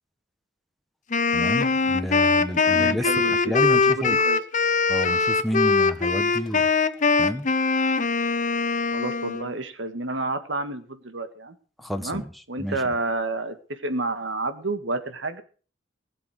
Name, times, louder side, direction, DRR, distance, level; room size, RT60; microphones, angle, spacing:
Wind instrument woodwind instrument, 1.1-9.5, left 4 dB, 40° left, 0.8 m, -22 dB
voice 1, 1.3-4.2 4.9-6.7 7.2-7.5 11.8-12.3 12.6-12.8, equal, ahead, 6 dB, 1.2 m, -30 dB
voice 2, 2.7-4.4 8.9-11.5 12.0-12.2 12.5-15.4, right 2 dB, 75° right, 9 dB, 1.8 m, -30 dB
20.0 x 7.6 x 6.4 m, 0.40 s
head